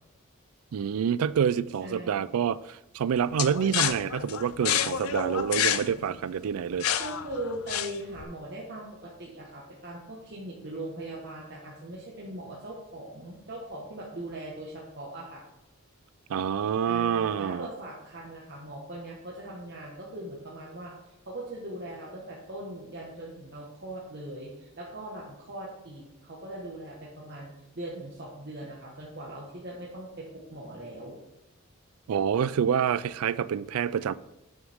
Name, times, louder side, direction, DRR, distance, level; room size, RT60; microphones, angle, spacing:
voice 1, 0.7-6.9 16.3-17.7 32.1-34.1, right 8 dB, 90° right, 0.4 m, -27 dB
voice 2, 1.8-2.2 5.1-5.6 7.0-15.4 16.8-27.5 27.7-31.2, right 1 dB, 50° right, 1.4 m, -40 dB
sound 1, 3.4-8.2, left 10 dB, 80° left, 0.5 m, -29 dB
9.0 x 7.2 x 3.6 m
head